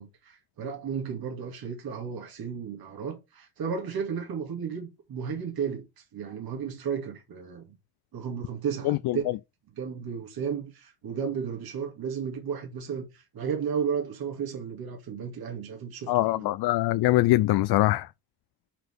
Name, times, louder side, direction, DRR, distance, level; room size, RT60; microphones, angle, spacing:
voice 1, 0.0-7.8 8.1-9.2 9.7-16.5, right 7 dB, 70° right, 2.3 m, -33 dB
voice 2, 8.9-9.2 16.1-18.1, left 17 dB, 85° left, 0.5 m, -23 dB
5.7 x 5.6 x 6.0 m
cardioid pair, 110°, 38 cm